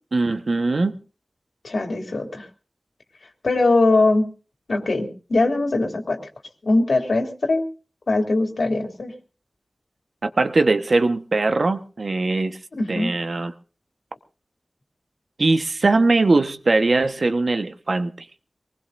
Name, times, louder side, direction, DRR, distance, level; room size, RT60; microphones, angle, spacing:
voice 1, 0.1-0.9 10.2-12.6 12.9-13.5 15.4-18.1, right 3 dB, 70° right, 1.3 m, -20 dB
voice 2, 1.6-2.5 3.4-4.3 4.7-6.2 6.6-7.7 8.1-9.1 12.7-13.1, left 2 dB, 80° left, 3.0 m, -21 dB
24.0 x 19.5 x 2.7 m
wide cardioid pair, 55°, 0 cm